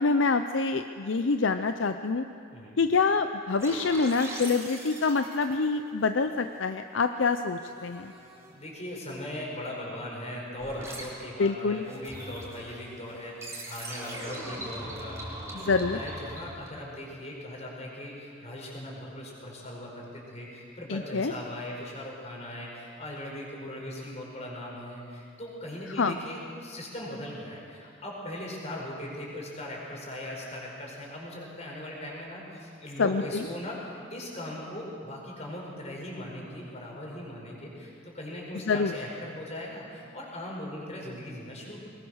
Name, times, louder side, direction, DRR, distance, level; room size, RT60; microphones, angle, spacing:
voice 1, 0.0-2.2 2.8-8.1 11.4-11.8 15.5-16.0 20.9-21.3 26.0-26.1 33.0-33.5 38.7-38.9, left 4 dB, 65° left, 8 dB, 0.6 m, -26 dB
sound 1, 3.6-6.8 7.2-8.7 10.6-11.1 11.8-17.0, right 1 dB, 15° right, 3.4 m, -42 dB
voice 2, 8.5-41.8, left 1 dB, 35° left, -2 dB, 5.3 m, -39 dB
21.5 x 20.5 x 6.4 m, 2.5 s
head